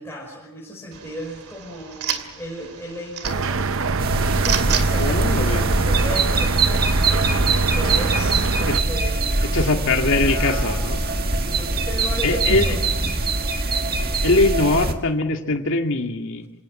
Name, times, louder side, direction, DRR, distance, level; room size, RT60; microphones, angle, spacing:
voice 1, 0.0-3.7 4.4-7.4 7.7-9.3 10.1-13.2, equal, 10° left, -6 dB, 6.0 m, -35 dB
sound 1, 0.9-6.3, right 8 dB, 80° right, 2.5 m, -32 dB
sound 2, 3.2-8.8, right 4 dB, 60° right, 0.8 m, -23 dB
sound 3, 4.0-14.9, right 2 dB, 45° right, 1.7 m, -23 dB
voice 2, 5.0-5.6 8.6-8.8 9.4-11.0 12.2-12.7 14.2-16.6, left 2 dB, 60° left, 4 dB, 2.2 m, -21 dB
27.5 x 18.0 x 7.6 m, 0.90 s
head